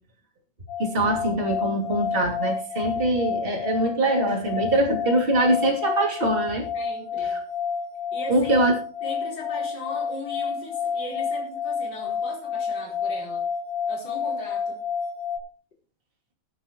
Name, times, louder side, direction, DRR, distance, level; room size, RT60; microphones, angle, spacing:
sound 1, 0.7-15.4, left 6 dB, 65° left, 5.4 m, -30 dB
voice 1, 0.8-6.7 8.3-8.7, right 1 dB, 15° right, -1 dB, 2.4 m, -23 dB
voice 2, 6.7-7.4 8.1-8.7 9.0-13.5 13.9-14.8, left 2 dB, 30° left, -3 dB, 4.8 m, -38 dB
20.5 x 8.9 x 3.1 m, 0.37 s
omnidirectional pair, 4.5 m